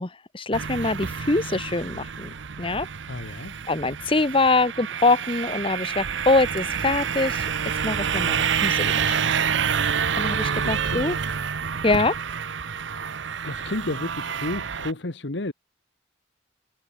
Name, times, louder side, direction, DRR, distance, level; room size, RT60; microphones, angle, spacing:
voice 1, 0.0-2.3 2.6-2.9 3.7-7.4 7.8-9.3 10.1-11.2 11.8-12.1, left 3 dB, 25° left, 1.0 m, -24 dB
sound 1, 0.5-14.9, right 7 dB, 70° right, 0.8 m, -28 dB
voice 2, 3.1-3.6 10.2-11.2 12.9-13.1 13.4-15.5, left 2 dB, 60° left, 1.4 m, -33 dB
head